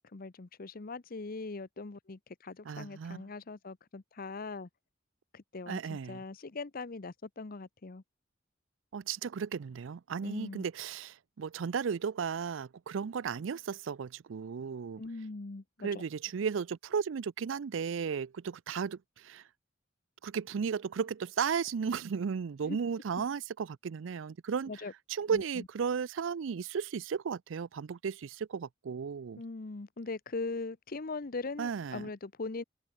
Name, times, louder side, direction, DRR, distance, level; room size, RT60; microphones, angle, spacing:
voice 1, 0.1-4.7 5.3-8.0 10.2-10.6 15.0-15.9 22.6-22.8 24.7-24.9 25.3-25.6 29.4-32.6, left 3 dB, 50° left, 0.8 m, -40 dB
voice 2, 2.6-3.3 5.7-6.2 8.9-15.0 15.8-19.4 20.2-24.8 25.1-29.4 31.6-32.1, right 6 dB, 80° right, 0.4 m, -35 dB
head